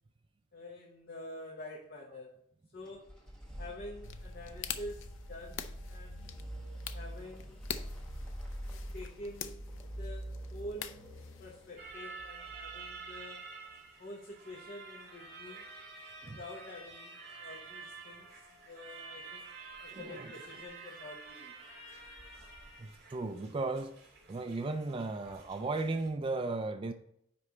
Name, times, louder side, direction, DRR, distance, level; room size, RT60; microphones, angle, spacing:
voice 1, 0.5-2.3 2.7-3.1 3.6-6.3 6.9-7.6 8.7-9.7 10.0-11.0 11.4-13.5 14.0-15.7 16.2-19.5 19.8-21.6, left 1 dB, 50° left, -2 dB, 1.0 m, -47 dB
sound 1, 2.9-13.7, equal, 5° left, 1.2 m, -45 dB
sound 2, 4.0-11.8, left 8 dB, 80° left, 0.5 m, -46 dB
sound 3, 11.8-26.1, right 4 dB, 55° right, 2.1 m, -49 dB
voice 2, 19.9-20.3 22.8-23.9 24.3-26.9, right 3 dB, 25° right, 6 dB, 0.4 m, -35 dB
9.6 x 3.3 x 4.1 m, 0.73 s
head